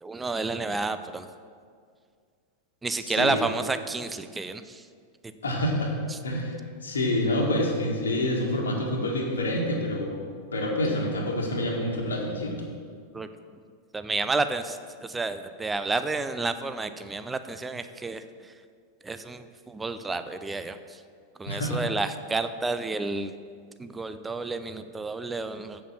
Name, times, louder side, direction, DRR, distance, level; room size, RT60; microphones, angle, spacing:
voice 1, 0.0-1.3 2.8-4.9 6.1-6.2 13.1-13.3 13.9-18.5 19.0-21.0 21.4-23.3 23.8-25.8, right 3 dB, 10° right, 10 dB, 0.5 m, -30 dB
voice 2, 3.0-3.4 5.4-5.9 6.2-10.3 10.5-12.6 21.5-21.8, left 1 dB, 70° left, 0 dB, 1.8 m, -27 dB
7.6 x 7.0 x 7.3 m, 2.1 s
figure-of-eight pair, 90°, 0 cm